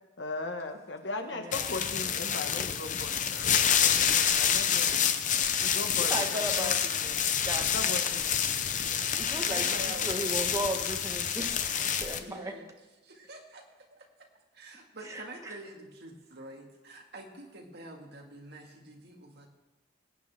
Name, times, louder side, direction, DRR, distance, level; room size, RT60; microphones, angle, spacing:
voice 1, 0.2-5.2 5.6-6.7 7.5-8.4, left 2 dB, 70° left, 5 dB, 1.3 m, -38 dB
voice 2, 1.3-1.7 6.0-7.7 9.2-12.6 15.0-15.6, right 1 dB, 15° right, 3 dB, 1.3 m, -36 dB
sound 1, 1.5-12.2, left 8 dB, 40° left, 0.7 m, -28 dB
voice 3, 9.5-10.4 12.2-12.7 13.0-13.6 13.9-14.0 14.5-19.5, right 1 dB, 60° right, 1 dB, 2.0 m, -46 dB
21.5 x 9.3 x 3.5 m, 1.1 s
head